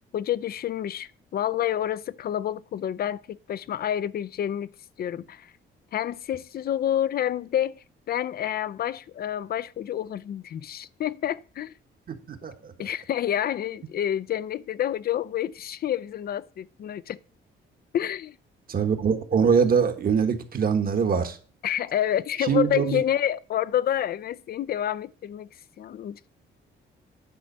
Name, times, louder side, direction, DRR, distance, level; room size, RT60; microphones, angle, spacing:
voice 1, 0.1-4.7 5.0-5.5 5.9-7.8 8.1-11.7 12.8-17.2 17.9-18.3 21.6-25.5 25.8-26.2, left 10 dB, 50° left, 0.5 m, -28 dB
voice 2, 12.1-12.9 18.7-21.4 22.4-23.0, right 6 dB, 50° right, 1.3 m, -23 dB
9.7 x 4.0 x 6.6 m
cardioid pair, 90°, 20 cm